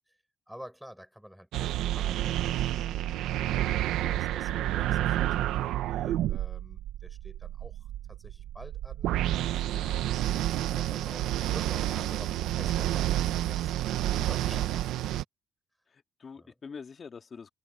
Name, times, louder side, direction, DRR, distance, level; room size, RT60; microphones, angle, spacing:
voice 1, 0.5-3.5 4.0-15.2 16.4-16.6, equal, ahead, 5.4 m, -49 dB
sound 1, 1.5-15.2, right 13 dB, 90° right, 1.1 m, -29 dB
voice 2, 14.2-14.6 15.9-17.5, left 5 dB, 40° left, 2.2 m, -45 dB
open air
cardioid pair, 90°, 0 cm